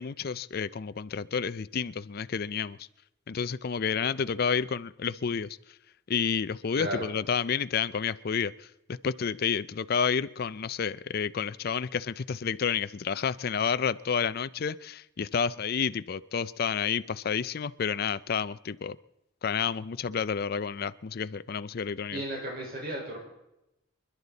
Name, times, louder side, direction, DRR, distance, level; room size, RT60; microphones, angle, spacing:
voice 1, 0.0-2.9 3.3-5.6 6.1-19.0 19.4-22.2, left 6 dB, 50° left, 0.5 m, -30 dB
voice 2, 6.8-7.1 22.1-23.2, right 1 dB, 50° right, 4.8 m, -34 dB
29.5 x 11.5 x 4.0 m
head